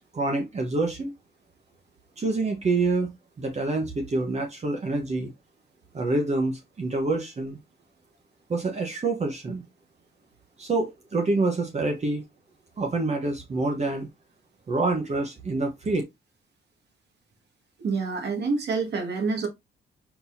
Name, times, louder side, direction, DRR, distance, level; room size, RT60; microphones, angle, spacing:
voice 1, 0.1-1.1 2.2-3.1 3.4-5.3 5.9-7.6 8.5-9.6 10.6-12.2 12.8-14.1 14.7-16.0, right 3 dB, 35° right, 1.1 m, -26 dB
voice 2, 17.8-19.5, right 4 dB, 60° right, 1.8 m, -27 dB
4.5 x 3.9 x 2.7 m
cardioid pair, 90°, 20 cm